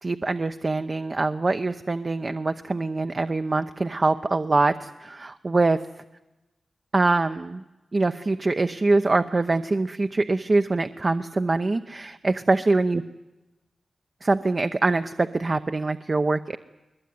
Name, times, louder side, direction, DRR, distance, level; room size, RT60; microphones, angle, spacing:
voice 1, 0.0-5.8 6.9-7.6 7.9-13.0 14.2-16.6, right 3 dB, 40° right, 9 dB, 0.8 m, -24 dB
21.5 x 20.5 x 9.5 m, 1.0 s
cardioid pair, 55°, 0 cm